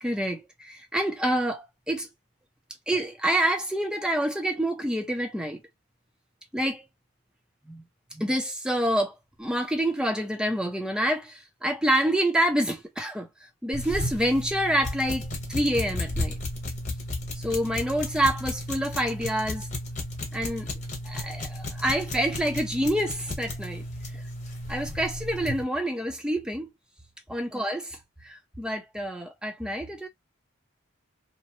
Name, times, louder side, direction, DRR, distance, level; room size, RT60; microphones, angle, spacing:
voice 1, 0.0-2.1 2.9-5.6 6.5-6.8 7.7-7.8 8.1-13.3 13.6-16.3 17.4-19.7 20.3-20.7 21.0-23.8 24.7-26.7 27.3-28.0 28.2-30.1, right 1 dB, 5° right, 0.5 m, -27 dB
sound 1, 13.7-25.6, left 1 dB, 35° left, 1.0 m, -34 dB
2.8 x 2.0 x 2.9 m
head